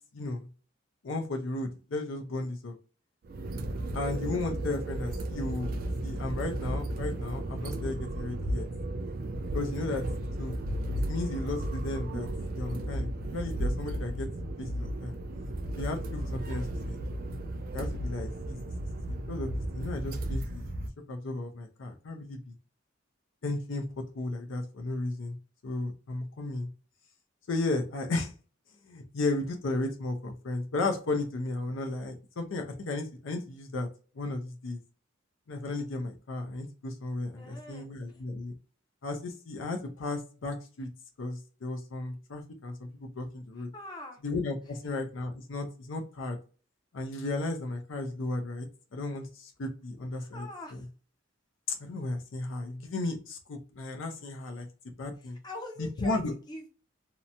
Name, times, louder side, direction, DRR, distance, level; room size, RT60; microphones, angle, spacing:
voice 1, 0.1-0.5 1.0-2.8 3.9-5.7 6.0-8.6 9.5-10.1 10.4-10.6 11.1-12.3 12.5-14.3 14.6-15.2 15.7-17.0 17.7-18.6 19.1-20.7 21.1-22.6 23.4-23.9 24.1-25.4 25.6-26.7 27.5-28.3 28.8-33.9 34.1-34.8 35.5-38.5 39.0-40.9 41.2-43.7 44.2-46.4 46.9-50.4 51.7-54.7 55.0-55.4 55.8-56.3, left 2 dB, 75° left, 4 dB, 0.5 m, -34 dB
sound 1, 3.2-20.9, right 1 dB, 45° right, 0.3 m, -34 dB
voice 2, 37.3-38.2 43.5-44.2 50.2-50.9 55.2-56.7, left 1 dB, 20° left, 1 dB, 0.6 m, -44 dB
2.8 x 2.1 x 2.6 m, 0.37 s
head